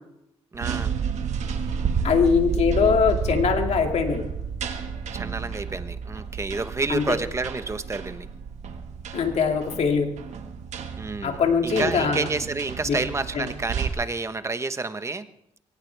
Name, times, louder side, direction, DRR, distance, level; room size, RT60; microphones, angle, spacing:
voice 1, 0.5-0.9 5.1-8.3 11.0-15.3, right 3 dB, 25° right, 11 dB, 1.1 m, -29 dB
sound 1, 0.5-13.9, right 6 dB, 80° right, 1.6 m, -31 dB
voice 2, 2.0-4.3 6.9-7.0 9.1-10.1 11.2-12.3 12.9-13.0 13.3-13.4, left 6 dB, 70° left, 4 dB, 2.5 m, -22 dB
22.5 x 18.0 x 3.5 m, 0.81 s
cardioid pair, 95°, 12 cm